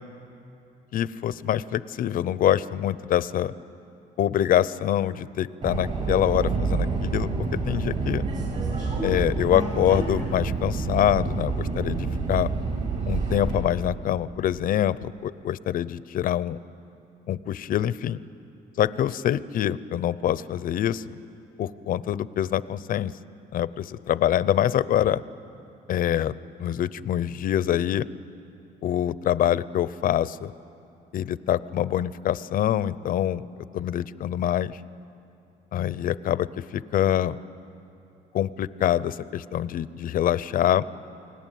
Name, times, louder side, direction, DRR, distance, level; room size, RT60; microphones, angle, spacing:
voice 1, 0.9-3.5 4.2-8.2 9.0-12.5 13.1-16.6 17.3-18.2 18.8-21.0 21.6-23.1 23.5-25.2 25.9-28.1 28.8-30.5 31.1-33.4 33.7-34.8 35.7-37.4 38.3-40.8, left 11 dB, 55° left, 17 dB, 0.7 m, -25 dB
Subway metro underground, 5.6-13.6, right 4 dB, 45° right, 7.4 m, -28 dB
29.5 x 19.5 x 9.3 m, 2.8 s
cardioid pair, 110°, 17 cm